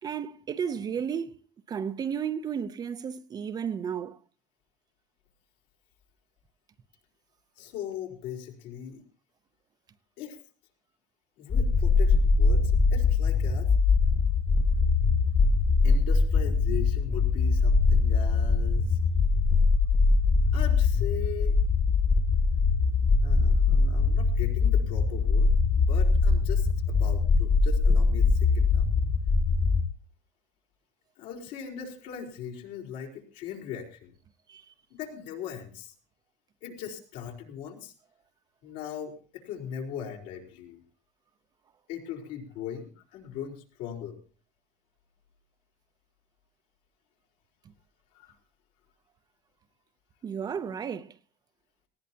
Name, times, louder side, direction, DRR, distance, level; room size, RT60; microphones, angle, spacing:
voice 1, 0.0-1.4 1.7-4.2 34.5-34.7 50.2-51.2, right 7 dB, 25° right, 0.6 m, -33 dB
voice 2, 7.6-9.0 10.2-10.4 11.4-13.7 15.8-19.0 20.5-21.6 23.2-28.9 31.2-34.1 34.9-35.9 36.6-37.9 38.6-40.8 41.9-44.2 48.1-48.4, left 9 dB, 80° left, 4.1 m, -39 dB
sound 1, 11.5-29.9, left 4 dB, 30° left, 1.5 m, -22 dB
19.0 x 16.5 x 2.8 m
cardioid pair, 160°, 15 cm